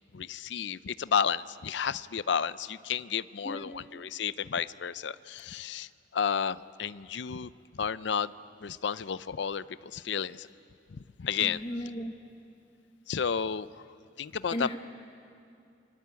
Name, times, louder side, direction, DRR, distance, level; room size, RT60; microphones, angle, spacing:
voice 1, 0.1-7.5 7.8-8.3 8.6-10.5 10.9-11.6 13.1-13.7 14.2-14.8, left 7 dB, 65° left, 16 dB, 0.5 m, -32 dB
voice 2, 11.4-12.1 14.5-14.8, equal, 30° left, 3 dB, 1.1 m, -35 dB
28.5 x 23.0 x 8.3 m, 2.5 s
head